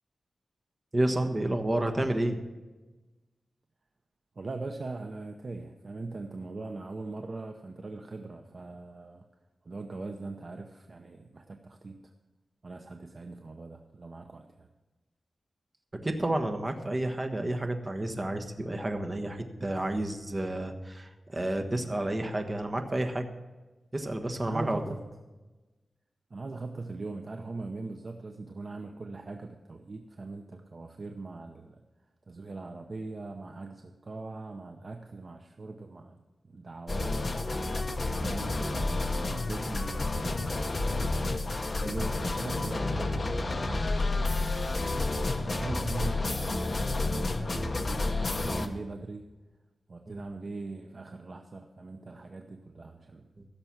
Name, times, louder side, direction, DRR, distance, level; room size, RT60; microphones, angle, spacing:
voice 1, 0.9-2.4 16.0-23.2 23.9-24.8 50.1-50.2 53.4-53.5, right 1 dB, 25° right, 5 dB, 1.3 m, -30 dB
voice 2, 4.4-9.3 9.6-12.1 12.6-14.7 24.4-25.0 26.3-31.8 32.3-37.2 38.2-40.8 41.8-49.3 49.9-53.3, right 3 dB, 40° right, 4 dB, 0.7 m, -41 dB
sound 1, 36.9-48.7, left 2 dB, 35° left, 0.9 m, -30 dB
16.0 x 6.8 x 5.9 m, 1.2 s
wide cardioid pair, 135°, 0 cm